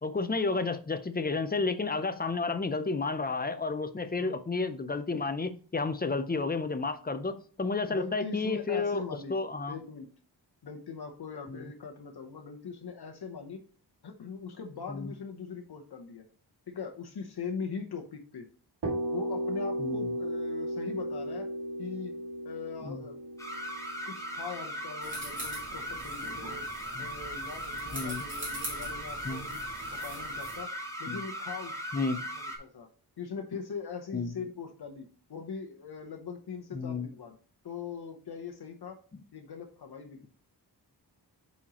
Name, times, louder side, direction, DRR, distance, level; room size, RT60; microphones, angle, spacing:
voice 1, 0.0-9.0 9.3-9.8 11.5-11.7 14.9-15.1 19.8-20.1 22.8-23.0 26.9-27.1 27.9-28.2 29.2-29.4 31.1-31.2 31.9-32.2 34.1-34.3 36.7-37.1, left 3 dB, 25° left, 10 dB, 0.5 m, -31 dB
voice 2, 7.9-9.4 9.7-10.1 10.6-13.6 14.0-16.3 16.7-18.5 19.1-21.5 21.8-22.1 22.4-23.2 24.1-26.7 27.0-30.7 31.0-31.8 32.3-32.9 33.2-37.4 37.6-39.0 39.3-40.3, left 5 dB, 65° left, 3 dB, 0.9 m, -41 dB
sound 1, 18.8-26.5, right 1 dB, 80° right, 2.2 m, -35 dB
sound 2, 23.4-32.6, equal, 10° left, 1.1 m, -38 dB
sound 3, 25.0-30.6, right 1 dB, 30° right, 2.8 m, -43 dB
8.7 x 4.3 x 2.9 m, 0.42 s
wide cardioid pair, 160°, 41 cm